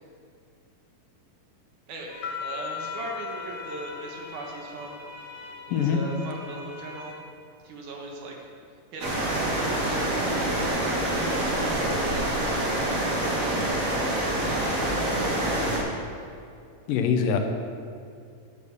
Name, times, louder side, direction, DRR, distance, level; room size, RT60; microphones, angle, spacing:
sound 1, 2.1-7.1, left 2 dB, 10° left, 0.8 m, -43 dB
sound 2, 2.2-4.9, left 9 dB, 60° left, 1.6 m, -38 dB
voice 1, 2.4-5.0 5.7-7.2 7.6-8.4 8.9-12.6 14.6-15.5, right 2 dB, 70° right, 0 dB, 2.7 m, -39 dB
sound 3, 9.0-15.8, right 1 dB, 30° right, 1.8 m, -26 dB
voice 2, 16.9-17.4, left 7 dB, 80° left, 5 dB, 2.5 m, -23 dB
11.5 x 6.7 x 6.6 m, 2.3 s
omnidirectional pair, 3.8 m